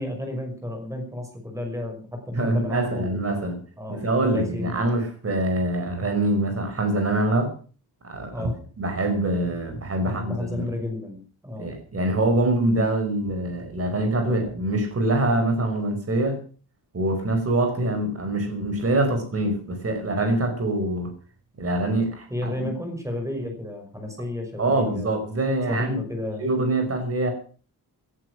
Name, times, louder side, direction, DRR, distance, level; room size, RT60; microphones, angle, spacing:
voice 1, 0.0-4.8 8.3-8.6 10.0-11.8 22.3-25.1 25.7-26.5, left 1 dB, 10° right, 3 dB, 5.7 m, -32 dB
voice 2, 2.3-3.6 3.9-7.5 8.0-8.5 8.8-10.7 11.6-16.4 16.9-21.1 21.6-22.7 24.6-26.0 26.4-27.3, right 1 dB, 35° right, 5 dB, 5.4 m, -24 dB
18.5 x 11.0 x 6.3 m, 0.39 s
wide cardioid pair, 170°, 38 cm